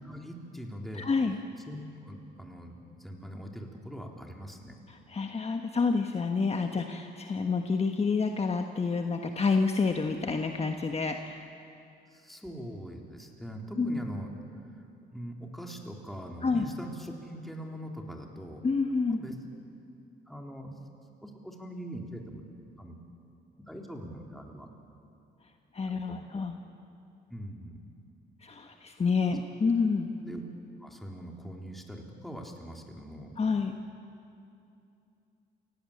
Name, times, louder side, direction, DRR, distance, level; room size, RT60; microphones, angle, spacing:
voice 1, 0.0-1.1 1.7-4.8 12.1-14.3 15.1-18.7 19.1-19.3 20.3-20.7 21.2-22.5 22.8-23.0 23.6-24.7 26.1-26.4 27.3-27.8 29.3-29.4 30.2-30.4 30.8-33.4, equal, ahead, 1 dB, 3.6 m, -42 dB
voice 2, 0.9-1.4 4.9-11.5 13.8-14.0 16.4-16.7 18.6-19.2 25.7-26.6 28.4-30.1 33.4-33.8, left 4 dB, 30° left, 4 dB, 1.4 m, -28 dB
28.5 x 17.0 x 8.7 m, 2.6 s
cardioid pair, 90°, 20 cm